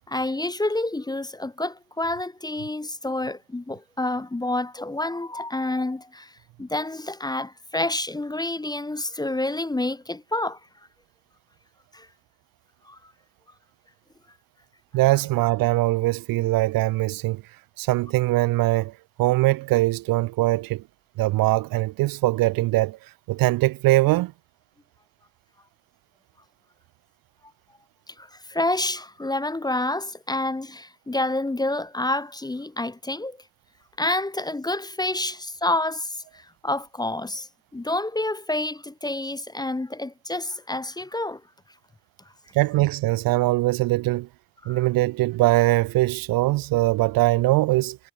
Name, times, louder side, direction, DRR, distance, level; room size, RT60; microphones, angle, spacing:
voice 1, 0.1-6.3 6.6-10.6 11.9-12.1 12.9-13.0 28.1-33.4 34.0-37.5 37.7-41.4 44.6-44.8, left 2 dB, 10° left, 0.7 m, -28 dB
voice 2, 14.9-17.4 17.8-18.9 19.2-20.8 21.2-23.0 23.3-24.3 42.5-44.3 44.7-48.0, right 18 dB, 60° right, 0.6 m, -21 dB
hypercardioid pair, 50°, 38 cm